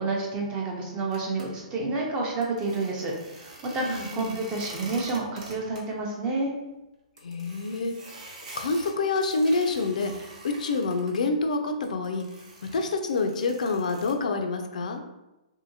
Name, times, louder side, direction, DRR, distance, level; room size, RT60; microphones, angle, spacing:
voice 1, 0.0-6.5, right 3 dB, 25° right, -1 dB, 0.6 m, -29 dB
sound 1, 1.1-1.4 2.4-5.8 6.1-6.2 6.5-6.6 7.2-11.2 11.8-14.1, right 2 dB, 70° right, 0.8 m, -45 dB
voice 2, 3.8-4.4 7.2-8.2 8.6-10.1 10.4-12.3 12.6-15.0, left 3 dB, 75° left, 5 dB, 0.4 m, -27 dB
2.7 x 2.7 x 2.7 m, 1.0 s
hypercardioid pair, 145°, 4 cm